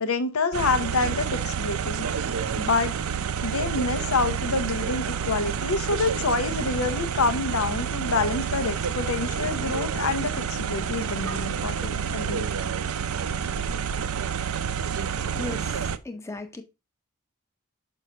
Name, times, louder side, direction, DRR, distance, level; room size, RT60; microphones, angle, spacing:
voice 1, 0.0-2.0 2.6-3.0 3.4-12.5, left 3 dB, 85° left, 0.9 m, -27 dB
sound 1, 0.5-16.0, right 7 dB, 85° right, 0.5 m, -29 dB
voice 2, 15.2-16.6, left 3 dB, 15° left, 0.8 m, -37 dB
6.5 x 5.4 x 2.8 m
head